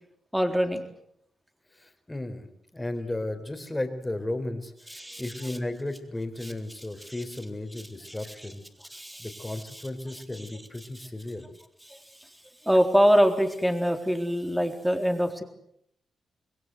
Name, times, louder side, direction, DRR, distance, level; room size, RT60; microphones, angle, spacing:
voice 1, 0.3-0.8 4.9-5.2 6.4-6.5 8.0-8.2 8.9-9.8 11.9-12.0 12.6-15.4, equal, 5° right, 5 dB, 3.8 m, -24 dB
voice 2, 1.7-8.6 9.2-11.4, left 1 dB, 15° left, 7 dB, 4.3 m, -34 dB
27.0 x 21.0 x 7.9 m, 0.74 s
cardioid pair, 105°, 0 cm